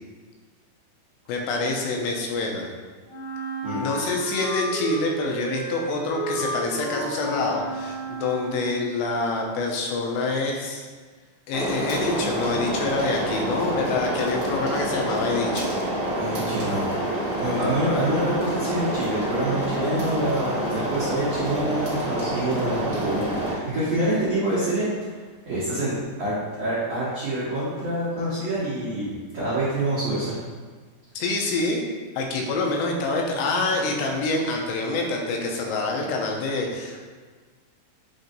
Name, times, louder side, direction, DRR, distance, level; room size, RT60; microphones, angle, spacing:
voice 1, 1.3-2.7 3.8-10.9 11.5-15.7 31.2-31.8 32.2-37.0, left 3 dB, 85° left, 0 dB, 2.8 m, -26 dB
Wind instrument woodwind instrument, 3.1-8.9, right 2 dB, 65° left, 2.3 m, -32 dB
sound 1, 11.5-23.5, right 1 dB, 60° right, 1.4 m, -27 dB
voice 2, 16.2-16.9 17.4-24.9 25.4-25.9 26.2-30.4, right 1 dB, 75° right, -12 dB, 1.4 m, -26 dB
7.1 x 2.6 x 2.6 m, 1.5 s
omnidirectional pair, 4.8 m